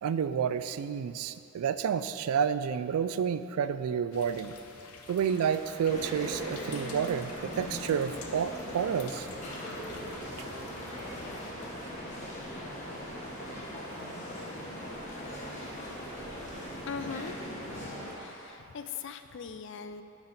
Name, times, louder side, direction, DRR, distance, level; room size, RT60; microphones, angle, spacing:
voice 1, 0.0-4.5 5.1-9.3, right 7 dB, 85° right, 13 dB, 0.3 m, -30 dB
sound 1, 4.1-11.5, left 4 dB, 90° left, 0.7 m, -50 dB
sound 2, 5.2-18.5, equal, 10° left, 1.8 m, -51 dB
sound 3, 5.9-18.1, equal, 35° left, 1.2 m, -40 dB
voice 2, 16.4-20.0, left 6 dB, 55° left, 9 dB, 0.3 m, -41 dB
8.6 x 6.0 x 4.1 m, 2.8 s
head